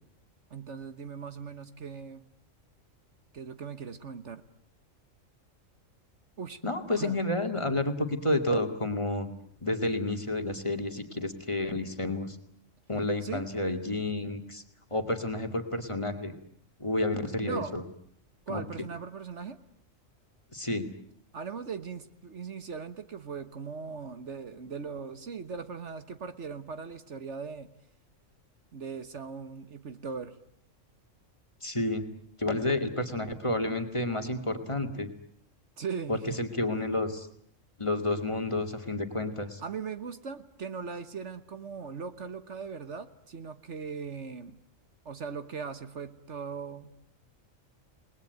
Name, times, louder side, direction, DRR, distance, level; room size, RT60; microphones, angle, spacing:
voice 1, 0.5-2.2 3.3-4.4 6.4-6.6 6.9-7.2 7.5-7.6 13.2-13.5 17.4-17.8 18.5-19.6 21.3-27.7 28.7-30.4 35.8-36.4 39.6-44.6 45.0-46.9, right 5 dB, 60° right, 11 dB, 1.6 m, -39 dB
voice 2, 6.6-9.3 9.6-12.4 12.9-14.6 14.9-16.3 16.8-17.8 18.5-18.6 20.5-20.9 31.6-32.0 32.4-35.1 36.1-37.3 37.8-39.6, left 2 dB, 25° left, 6 dB, 2.2 m, -30 dB
29.5 x 20.0 x 9.2 m, 0.68 s
omnidirectional pair, 1.4 m